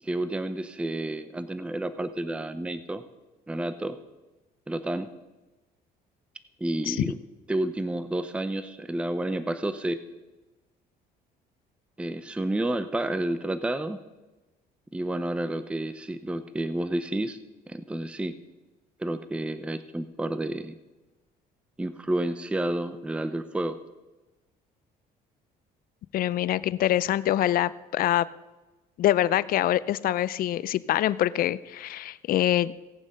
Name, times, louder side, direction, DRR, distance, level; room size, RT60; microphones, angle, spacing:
voice 1, 0.0-3.0 3.5-4.0 4.7-5.1 6.6-7.2 7.5-10.0 12.0-14.0 14.9-17.4 17.7-18.3 19.0-20.7 21.8-23.8, right 1 dB, 5° right, 12 dB, 0.5 m, -30 dB
voice 2, 26.1-28.3 29.0-32.7, left 13 dB, 60° left, 17 dB, 0.5 m, -25 dB
17.0 x 7.1 x 5.3 m, 1.1 s
cardioid pair, 110°, 17 cm